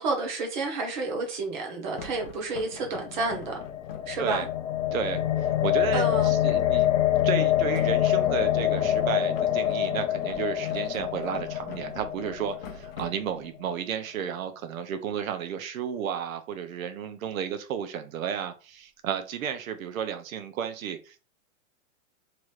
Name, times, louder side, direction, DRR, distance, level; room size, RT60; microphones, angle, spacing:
voice 1, 0.0-3.6 4.1-4.5 5.9-6.3, right 3 dB, 35° right, 0.8 m, -30 dB
sound 1, 2.0-4.6 7.7-13.6, left 6 dB, 45° left, 0.4 m, -44 dB
sound 2, 2.9-13.1, left 12 dB, 75° left, 1.0 m, -26 dB
voice 2, 4.9-7.0 7.2-21.2, right 8 dB, 75° right, 0.8 m, -33 dB
2.9 x 2.4 x 3.2 m
supercardioid pair, 180°, 41 cm